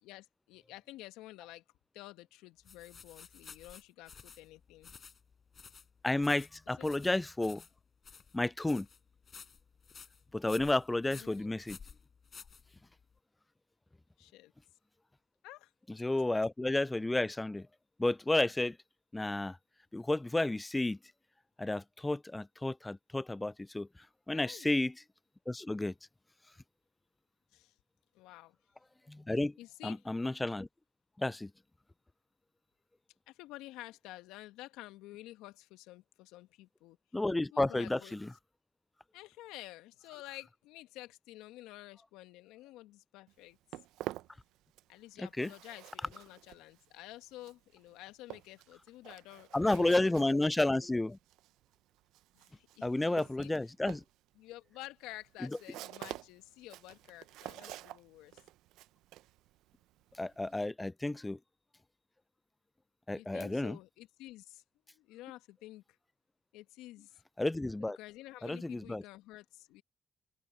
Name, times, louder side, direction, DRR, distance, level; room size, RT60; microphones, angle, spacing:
voice 1, 0.0-1.6 1.9-4.9 6.8-6.9 11.1-11.6 14.2-14.5 15.4-15.7 24.3-24.7 27.5-27.7 28.1-28.5 29.6-30.0 33.3-37.0 37.5-38.2 39.1-43.6 44.9-50.3 52.3-53.5 54.4-58.4 63.1-64.6 64.9-65.8 66.5-67.1 67.8-69.8, left 17 dB, 75° left, 1.6 m, -51 dB
sound 1, 2.6-13.1, left 6 dB, 45° left, 7.3 m, -54 dB
voice 2, 6.0-7.6 8.3-8.9 10.3-11.8 15.9-17.7 18.0-18.8 19.1-19.6 19.9-21.0 21.6-23.9 24.3-25.0 25.5-25.9 29.1-29.5 29.8-30.7 31.2-31.5 37.1-38.3 45.2-45.5 49.5-51.2 52.8-54.0 60.2-61.4 63.1-63.8 67.4-68.0 68.4-69.0, left 2 dB, 15° left, 0.5 m, -31 dB
Walk footsteps, 43.3-45.0 45.3-60.7, right 16 dB, 75° right, 0.9 m, -49 dB
open air
hypercardioid pair, 50°, 0 cm